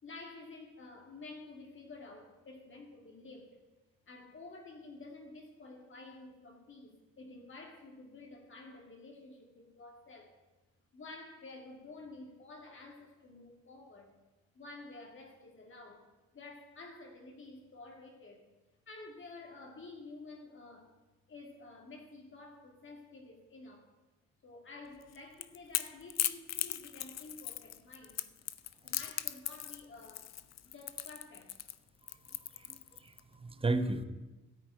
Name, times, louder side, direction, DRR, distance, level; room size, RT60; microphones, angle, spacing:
voice 1, 0.0-3.6 4.1-10.3 10.9-14.1 14.5-18.5 18.9-21.0 21.3-23.9 24.4-28.2 28.8-30.3 30.6-31.6 33.4-33.5, left 3 dB, 40° left, 2 dB, 2.3 m, -51 dB
Crackle / Crack, 25.0-33.2, left 12 dB, 60° left, 0.6 m, -38 dB
voice 2, 32.1-34.0, right 2 dB, 20° right, 9 dB, 0.9 m, -35 dB
14.0 x 4.7 x 9.0 m, 1.1 s
cardioid pair, 90°, 30 cm